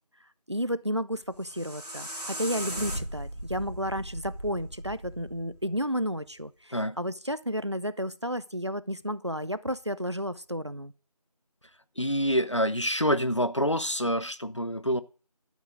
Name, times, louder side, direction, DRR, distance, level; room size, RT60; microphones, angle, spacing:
voice 1, 0.5-10.9, equal, 45° right, 0.6 m, -32 dB
sound 1, 1.2-6.3, right 1 dB, 85° right, 2.1 m, -38 dB
voice 2, 12.0-15.0, equal, 50° left, 0.8 m, -26 dB
12.0 x 7.4 x 6.2 m
figure-of-eight pair, 180°, 20 cm